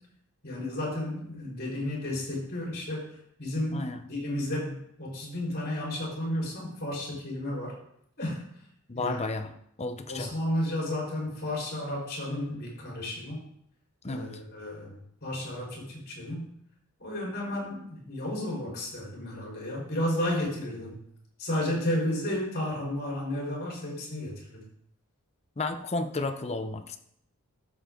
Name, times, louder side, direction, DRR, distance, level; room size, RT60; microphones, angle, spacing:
voice 1, 0.4-3.1 3.4-7.7 8.2-8.4 8.9-9.2 10.1-13.4 14.0-14.9 15.2-16.4 17.0-21.0 21.4-24.7, left 1 dB, 45° left, -3 dB, 4.5 m, -32 dB
voice 2, 3.7-4.0 8.9-9.5 9.8-10.4 14.0-14.4 25.6-27.0, left 3 dB, 30° left, 7 dB, 0.7 m, -32 dB
12.5 x 7.0 x 3.8 m, 0.73 s
head